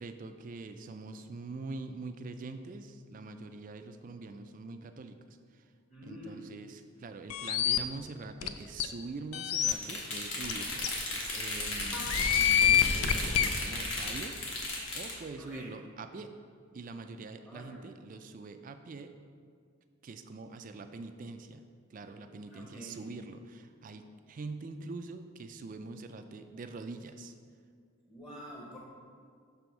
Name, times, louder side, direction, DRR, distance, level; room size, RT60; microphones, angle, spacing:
voice 1, 0.0-5.1 6.1-10.9 11.3-12.0 12.3-14.4 14.9-16.3 16.7-19.1 20.0-21.6 21.9-24.0 24.3-27.3, right 3 dB, 35° right, 8 dB, 0.3 m, -44 dB
voice 2, 5.9-6.4 15.4-15.7 17.4-17.8 22.5-23.0 28.1-28.8, equal, 20° left, -5 dB, 0.8 m, -47 dB
sound 1, 7.3-7.8 8.4-8.5 8.8-8.9 9.3-9.7 10.4-10.5 10.8-10.9 11.9-13.5, left 10 dB, 80° left, 0.4 m, -26 dB
sound 2, 9.6-15.2, left 1 dB, 60° left, 1.4 m, -35 dB
6.9 x 3.4 x 6.0 m, 2.1 s
head